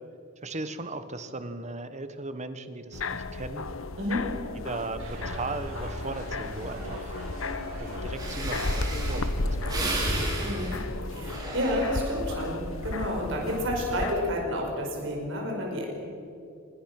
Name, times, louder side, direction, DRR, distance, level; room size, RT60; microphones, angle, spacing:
voice 1, 0.4-3.7 4.6-7.2 7.8-10.1, right 2 dB, 35° right, 10 dB, 1.4 m, -37 dB
sound 1, 2.9-14.1, left 2 dB, 90° left, 1.1 m, -34 dB
sound 2, 5.0-10.2, equal, 85° right, 7.7 m, -40 dB
Breathing, 7.8-7.9 8.1-12.4 12.9-13.2, right 2 dB, 20° right, 5.0 m, -34 dB
voice 2, 10.4-10.8 11.0-15.9, equal, 65° right, 0 dB, 5.5 m, -30 dB
25.5 x 21.5 x 6.1 m, 2.7 s
head